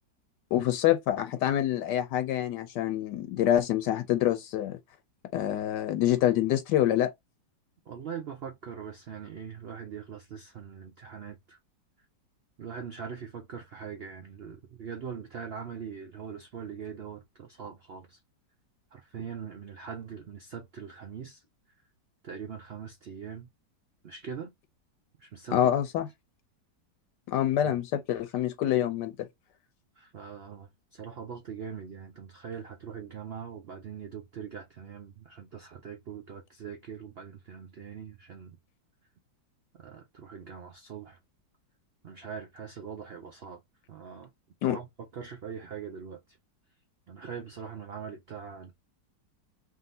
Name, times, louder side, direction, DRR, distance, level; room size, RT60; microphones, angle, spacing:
voice 1, 0.5-4.8 5.3-7.1 25.5-26.1 27.3-29.3 44.6-44.8, left 11 dB, 80° left, 1.2 m, -26 dB
voice 2, 7.9-11.6 12.6-18.2 18.9-21.4 22.2-23.5 24.0-24.5 25.2-25.7 27.6-27.8 30.0-38.6 39.7-41.2 42.0-43.6 43.9-44.3 44.7-44.9 45.1-46.4 47.1-48.7, right 7 dB, 80° right, 0.5 m, -42 dB
3.7 x 2.7 x 3.8 m
omnidirectional pair, 1.9 m